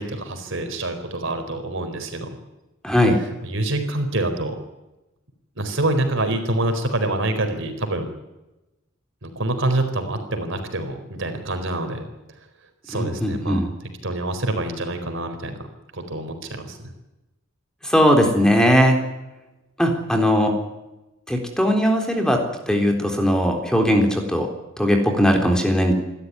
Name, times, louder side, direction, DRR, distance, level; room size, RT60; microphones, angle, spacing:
voice 1, 0.0-2.3 3.4-4.5 5.6-8.1 9.2-12.0 12.9-13.6 14.0-15.6 15.9-16.8, right 2 dB, 65° right, 6 dB, 4.4 m, -26 dB
voice 2, 2.8-3.2 12.9-13.7 17.8-19.0 19.8-20.5 21.3-22.4 22.7-24.5 24.8-25.9, equal, 5° left, 3 dB, 3.7 m, -19 dB
28.0 x 13.0 x 9.7 m, 1.0 s
head